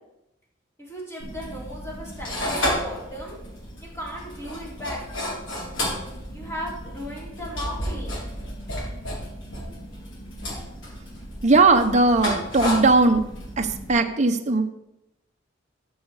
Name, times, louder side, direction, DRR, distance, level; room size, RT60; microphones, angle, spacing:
voice 1, 0.8-3.4 3.8-5.0 6.3-8.2, equal, 15° left, -4 dB, 4.0 m, -36 dB
sound 1, 1.2-13.9, equal, 75° left, 4.2 m, -32 dB
voice 2, 11.4-13.3 13.6-14.6, right 3 dB, 40° right, 5 dB, 0.8 m, -18 dB
13.5 x 6.4 x 4.8 m, 0.87 s
head